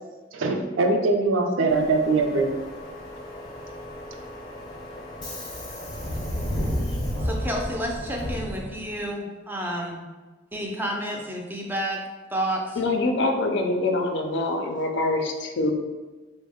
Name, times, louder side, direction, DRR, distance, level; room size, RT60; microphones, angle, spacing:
voice 1, 0.3-2.5, right 3 dB, 70° right, 3 dB, 0.5 m, -22 dB
Subway metro underground, 1.7-9.1, equal, 20° left, 0.7 m, -33 dB
voice 2, 7.2-10.1 10.5-12.0 12.3-12.8, right 1 dB, 10° right, 0 dB, 0.5 m, -30 dB
voice 3, 12.8-15.7, left 2 dB, 60° left, 4 dB, 0.4 m, -25 dB
4.1 x 2.1 x 3.5 m, 1.2 s
head